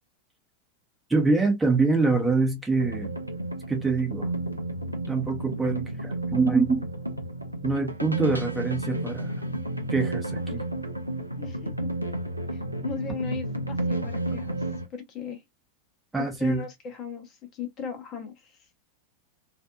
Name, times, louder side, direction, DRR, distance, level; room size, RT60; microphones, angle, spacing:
voice 1, 1.1-3.1 3.7-4.3 5.1-6.9 7.6-9.3 9.9-10.6 16.1-16.6, right 3 dB, 10° right, 0.9 m, -25 dB
sound 1, 2.8-14.9, right 1 dB, 85° right, 0.5 m, -32 dB
voice 2, 11.4-11.9 12.5-14.6 14.9-15.4 16.4-18.6, left 6 dB, 35° left, 0.8 m, -38 dB
2.5 x 2.5 x 2.2 m
figure-of-eight pair, 90°, 0 cm